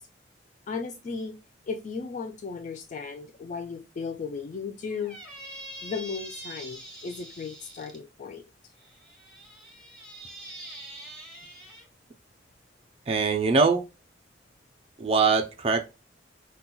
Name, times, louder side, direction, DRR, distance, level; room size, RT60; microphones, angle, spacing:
voice 1, 0.7-1.3 1.7-5.2 5.8-8.4, left 5 dB, 40° left, 0.3 m, -35 dB
Squeak, 4.9-8.0 8.8-11.9, right 1 dB, ahead, 1.2 m, -44 dB
voice 2, 13.1-13.9 15.0-15.8, right 4 dB, 30° right, 0.4 m, -22 dB
5.3 x 2.2 x 2.2 m
head